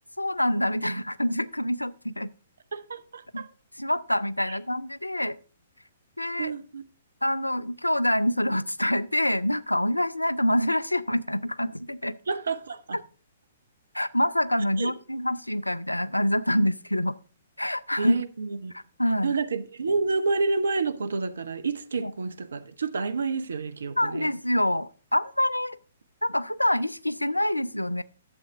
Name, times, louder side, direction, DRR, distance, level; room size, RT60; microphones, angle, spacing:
voice 1, 0.2-2.3 3.3-3.5 3.8-5.4 6.2-6.5 7.2-12.2 13.9-17.1 17.6-18.1 18.7-19.3 22.0-22.1 24.0-25.8 26.2-28.0, left 1 dB, 85° left, 0.4 m, -26 dB
voice 2, 2.7-3.5 4.5-4.6 6.4-6.8 12.3-13.0 14.8-14.9 18.0-18.7 19.2-24.3, right 4 dB, 65° right, 0.7 m, -29 dB
11.5 x 7.8 x 3.6 m
figure-of-eight pair, 120°, 0 cm